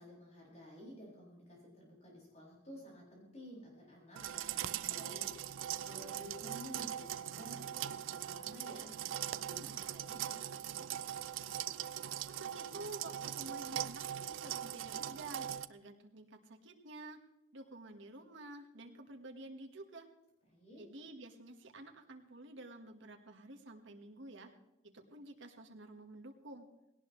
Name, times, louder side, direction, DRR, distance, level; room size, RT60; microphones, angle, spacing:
voice 1, 0.0-10.9 20.5-20.8, equal, 35° left, -4 dB, 7.0 m, -53 dB
sound 1, 4.2-15.7, right 10 dB, 90° right, 0.5 m, -41 dB
voice 2, 12.0-17.2 17.5-20.1 20.8-24.5 24.8-26.7, right 2 dB, 70° right, 3 dB, 1.6 m, -50 dB
18.5 x 17.5 x 3.2 m, 0.93 s
head